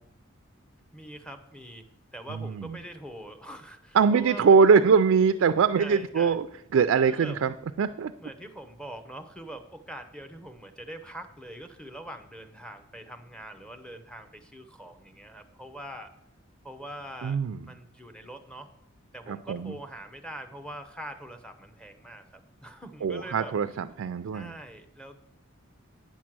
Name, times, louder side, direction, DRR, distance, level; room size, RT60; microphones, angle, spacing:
voice 1, 0.9-1.9 2.1-4.8 5.7-6.4 7.1-7.4 8.2-16.1 16.6-18.7 19.1-23.5 24.3-25.2, right 1 dB, 5° left, 5 dB, 0.7 m, -43 dB
voice 2, 2.3-2.7 3.9-6.5 6.7-8.1 17.2-17.6 19.3-19.7 23.0-24.5, right 5 dB, 75° right, 10 dB, 0.3 m, -22 dB
8.8 x 6.2 x 6.0 m, 0.81 s
head